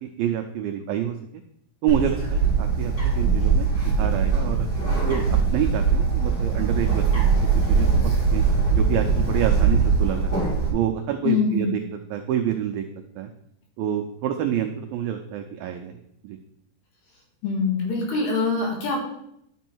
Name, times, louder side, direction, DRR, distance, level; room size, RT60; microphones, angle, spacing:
voice 1, 0.0-1.2 1.8-4.7 5.1-7.9 8.3-8.4 8.7-10.3 10.7-11.8 12.1-12.8 13.2-13.3 13.8-16.0 16.2-16.4, right 10 dB, 90° right, 5 dB, 2.1 m, -27 dB
Bird, 1.9-10.7, right 5 dB, 25° left, 3.5 m, -21 dB
voice 2, 11.2-11.7 17.4-19.0, left 4 dB, 70° left, -1 dB, 3.8 m, -23 dB
11.0 x 6.3 x 4.5 m, 0.76 s
omnidirectional pair, 4.9 m